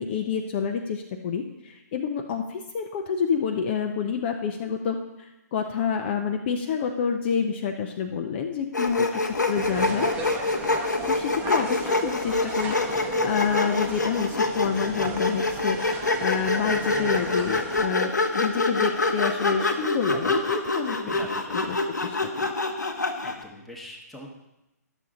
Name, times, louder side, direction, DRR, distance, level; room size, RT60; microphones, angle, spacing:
voice 1, 0.0-10.1 11.1-21.0 21.5-22.5, left 6 dB, 35° left, 4 dB, 0.7 m, -28 dB
Sawing, 8.7-23.4, left 3 dB, 85° left, 1.0 m, -26 dB
voice 2, 9.1-9.4 20.9-21.7 23.2-24.3, left 1 dB, ahead, -2 dB, 1.3 m, -42 dB
sound 1, 9.5-17.8, right 3 dB, 15° right, 1.0 m, -36 dB
11.5 x 7.0 x 3.8 m, 0.94 s
figure-of-eight pair, 135°, 9 cm